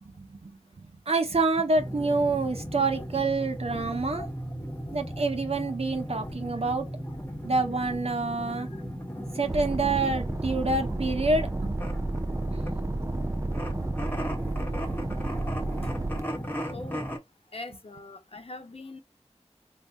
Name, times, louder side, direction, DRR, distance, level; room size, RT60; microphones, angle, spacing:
voice 1, 0.0-4.3 4.9-6.9 7.4-8.7 9.3-11.8 15.4-15.5 15.8-16.1 17.7-17.8, right 3 dB, 60° right, 0.9 m, -27 dB
sound 1, 1.7-17.2, equal, 15° left, 1.1 m, -36 dB
sound 2, 9.5-16.2, right 2 dB, 25° right, 0.5 m, -32 dB
voice 2, 16.7-17.1 17.5-19.0, left 2 dB, 60° left, 0.9 m, -41 dB
3.4 x 2.1 x 3.8 m
wide cardioid pair, 55°, 11 cm